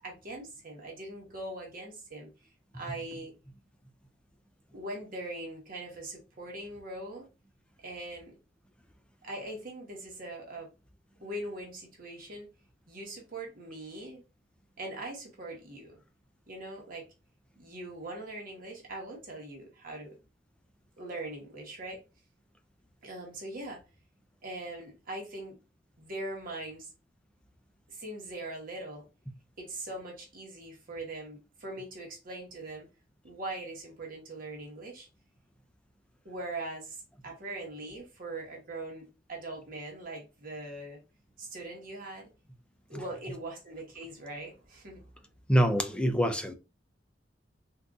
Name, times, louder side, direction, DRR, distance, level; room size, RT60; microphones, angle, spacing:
voice 1, 0.0-2.3 2.7-3.3 4.7-7.3 7.8-8.3 9.2-10.7 11.2-12.5 12.9-14.2 14.8-16.0 16.5-17.1 17.6-20.1 21.0-22.0 23.0-23.8 24.4-25.6 26.0-26.9 27.9-29.0 29.6-32.9 33.2-35.1 36.2-41.0 41.4-42.3 42.9-45.1, right 2 dB, 50° right, 1.1 m, -41 dB
voice 2, 45.5-46.5, equal, 5° left, 0.4 m, -25 dB
3.8 x 2.6 x 2.4 m
head